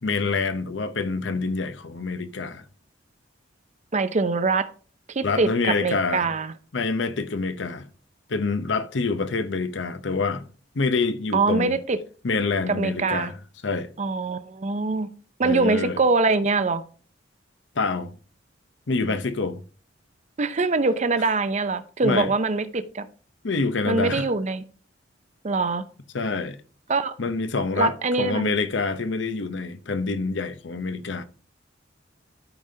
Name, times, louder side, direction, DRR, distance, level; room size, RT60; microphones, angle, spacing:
voice 1, 0.0-2.6 5.2-6.3 6.7-7.9 8.3-10.5 10.7-11.8 12.2-13.3 13.6-13.9 15.4-16.0 17.8-18.1 18.9-19.6 22.0-22.3 23.4-24.3 26.1-26.6 27.2-31.2, left 4 dB, 70° left, 0.8 m, -26 dB
voice 2, 3.9-4.7 5.1-6.5 11.3-12.0 12.7-13.3 14.0-15.1 15.4-16.8 20.4-23.1 23.9-24.6 25.4-25.8 26.9-27.2 27.8-28.5, right 3 dB, 40° right, 0.6 m, -23 dB
12.5 x 5.2 x 2.8 m
head